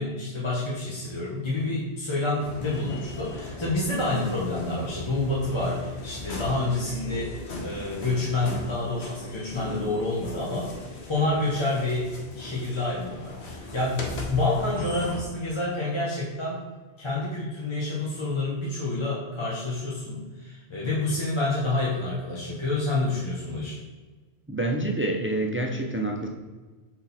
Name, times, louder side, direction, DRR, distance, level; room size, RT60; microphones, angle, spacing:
voice 1, 0.0-10.7 11.1-16.6 17.0-23.8, left 2 dB, 25° left, -6 dB, 1.1 m, -28 dB
sound 1, 2.4-15.2, left 2 dB, 70° left, 1.3 m, -38 dB
voice 2, 24.5-26.3, right 1 dB, 20° right, 2 dB, 0.3 m, -27 dB
6.3 x 4.1 x 4.1 m, 1.3 s
omnidirectional pair, 1.1 m